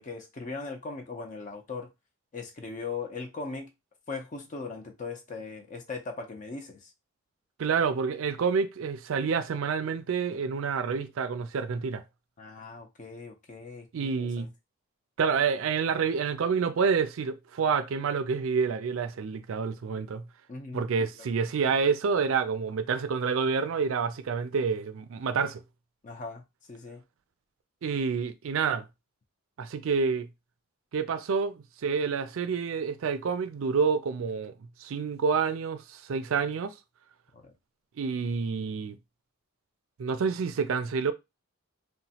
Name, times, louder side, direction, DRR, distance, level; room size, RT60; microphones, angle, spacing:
voice 1, 0.0-1.9 2.3-3.7 4.1-6.9 12.4-14.5 20.5-20.9 26.0-26.4 26.7-27.0 37.3-37.5, left 4 dB, 35° left, 0.5 m, -39 dB
voice 2, 7.6-12.0 13.9-14.5 15.2-20.3 20.7-25.6 27.8-28.8 29.6-30.3 30.9-34.5 34.8-36.7 38.0-39.0 40.0-41.1, right 5 dB, 70° right, 0.4 m, -28 dB
3.0 x 2.1 x 2.8 m
head